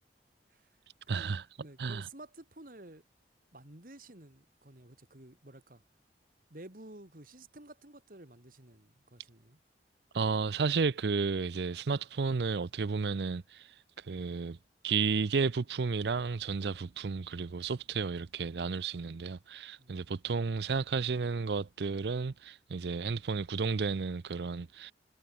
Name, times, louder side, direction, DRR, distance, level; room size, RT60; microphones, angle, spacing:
voice 1, 1.1-1.5 1.8-2.1 10.1-14.6 14.8-24.9, right 5 dB, 70° right, 0.5 m, -32 dB
voice 2, 1.6-3.0 3.5-5.8 6.5-9.6 19.8-20.0, right 2 dB, 50° right, 2.6 m, -52 dB
head